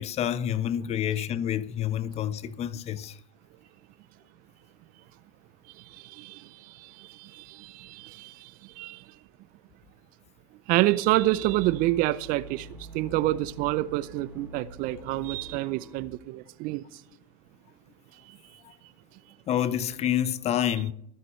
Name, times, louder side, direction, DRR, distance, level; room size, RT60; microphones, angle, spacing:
voice 1, 0.0-3.2 19.5-20.9, left 10 dB, 35° left, 0.8 m, -28 dB
voice 2, 5.8-9.0 10.7-12.7 12.9-16.8 18.3-18.4, right 17 dB, 45° right, 0.6 m, -28 dB
sound 1, 10.9-16.1, equal, 10° right, 4.6 m, -46 dB
21.5 x 9.7 x 3.2 m
hypercardioid pair, 100°, 20 cm